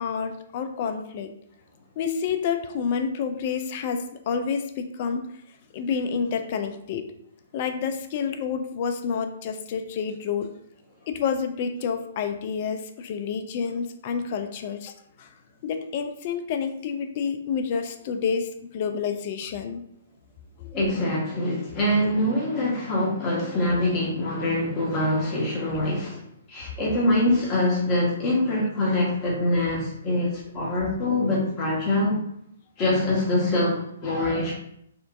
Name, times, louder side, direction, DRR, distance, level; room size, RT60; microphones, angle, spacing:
voice 1, 0.0-1.3 2.0-5.2 5.7-7.1 7.5-10.5 11.1-14.9 15.2-15.3 15.6-19.8 20.6-20.7, left 6 dB, 45° left, 7 dB, 0.4 m, -29 dB
voice 2, 20.7-32.2 32.8-34.5, left 1 dB, 30° left, -4 dB, 1.3 m, -24 dB
4.3 x 2.5 x 2.4 m, 0.72 s
figure-of-eight pair, 125°, 0 cm